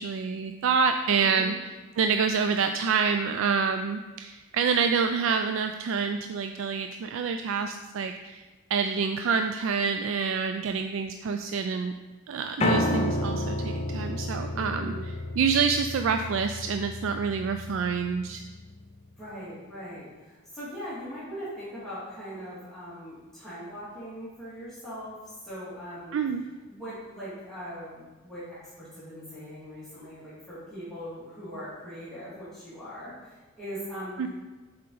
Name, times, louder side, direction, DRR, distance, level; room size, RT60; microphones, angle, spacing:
voice 1, 0.0-1.7 2.0-8.4 8.7-11.9 12.3-14.9 15.4-18.4 26.1-26.5 34.2-34.3, right 5 dB, 65° right, 7 dB, 0.3 m, -27 dB
voice 2, 1.2-1.6 14.5-15.0 19.2-26.2 26.7-34.3, equal, ahead, -12 dB, 2.1 m, -40 dB
Piano, 12.6-18.8, left 2 dB, 30° left, 0.4 m, -31 dB
7.4 x 4.4 x 3.9 m, 1.2 s
head